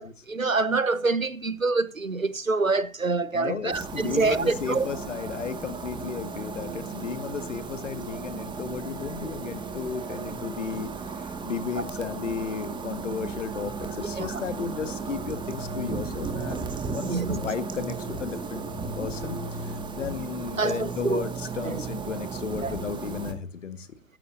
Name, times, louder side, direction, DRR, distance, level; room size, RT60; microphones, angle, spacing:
voice 1, 0.0-4.9 11.8-11.9 14.2-14.4 17.0-17.4 20.6-21.2 21.6-21.8 22.6-22.7, right 3 dB, 90° right, 1.2 m, -26 dB
voice 2, 3.3-10.9 11.4-18.6 19.0-23.9, left 6 dB, 65° left, 1.8 m, -34 dB
sound 1, 3.7-23.3, right 4 dB, 10° right, 1.9 m, -35 dB
15.5 x 14.0 x 2.7 m
figure-of-eight pair, 105°, 39 cm